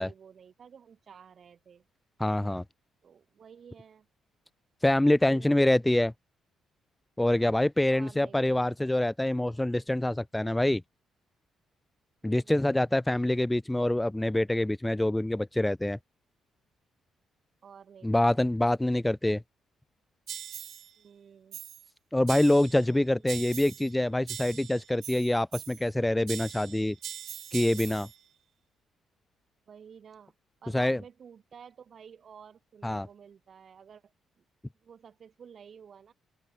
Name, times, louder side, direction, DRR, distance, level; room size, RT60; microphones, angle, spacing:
voice 1, 0.0-1.9 3.0-4.1 5.3-5.6 7.9-8.8 12.2-12.6 17.6-18.5 21.0-21.6 23.2-23.4 29.7-30.3 30.6-34.4 34.7-36.1, right 7 dB, 50° right, 6.0 m, -52 dB
voice 2, 2.2-2.6 4.8-6.1 7.2-10.8 12.2-16.0 18.0-19.4 22.1-27.0 27.5-28.1 30.7-31.0 32.8-33.1, left 1 dB, 10° left, 0.4 m, -25 dB
sound 1, 20.3-20.9 21.5-21.9 22.3-22.9 23.3-23.9 24.3-25.9 26.3-28.2, right 10 dB, 65° right, 1.6 m, -41 dB
open air
cardioid pair, 100°, 0 cm